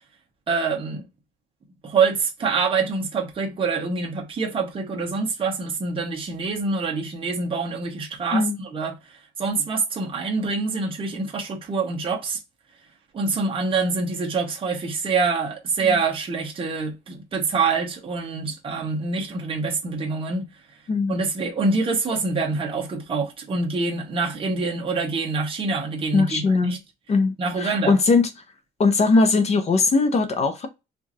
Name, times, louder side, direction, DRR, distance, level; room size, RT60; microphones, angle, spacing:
voice 1, 0.5-1.0 1.8-12.4 13.1-20.5 21.1-26.8 27.4-28.0, right 4 dB, 30° right, 1.0 m, -25 dB
voice 2, 20.9-21.2 26.1-26.7 27.1-28.3 28.8-30.7, left 3 dB, 35° left, 0.6 m, -20 dB
4.6 x 2.5 x 2.7 m
cardioid pair, 170°, 19 cm